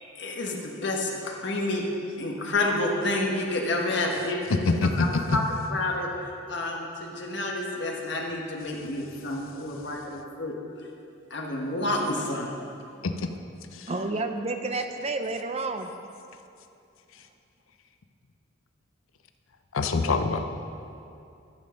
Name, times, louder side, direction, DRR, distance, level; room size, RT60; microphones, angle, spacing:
voice 1, 0.1-1.8 2.2-4.4 4.8-6.1 6.5-10.5 11.3-12.5, left 2 dB, 60° left, 0 dB, 1.3 m, -29 dB
voice 2, 4.7-5.4 13.0-13.1 13.8-13.9 19.7-20.4, left 3 dB, 90° left, 7 dB, 0.6 m, -24 dB
voice 3, 13.9-15.9, right 3 dB, 30° right, 7 dB, 0.6 m, -30 dB
13.0 x 5.4 x 6.4 m, 2.6 s
head